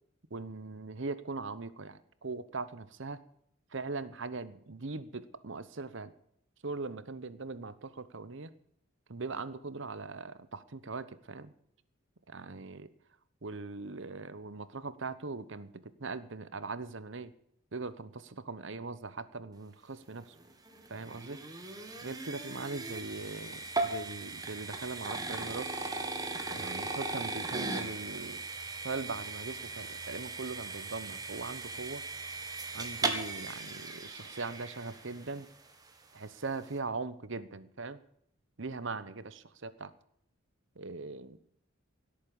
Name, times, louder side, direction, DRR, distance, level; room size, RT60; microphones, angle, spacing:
voice 1, 0.3-3.2 3.7-6.1 6.6-8.5 9.1-11.5 12.3-12.9 13.4-17.3 17.7-20.3 20.9-21.4 22.0-25.7 26.5-28.4 28.8-32.0 32.7-35.5 36.1-38.0 38.6-39.9 40.8-41.4, right 3 dB, 65° right, 15 dB, 1.0 m, -40 dB
sound 1, 20.3-35.5, right 3 dB, 20° right, 1.7 m, -38 dB
17.0 x 8.6 x 7.1 m, 0.70 s
head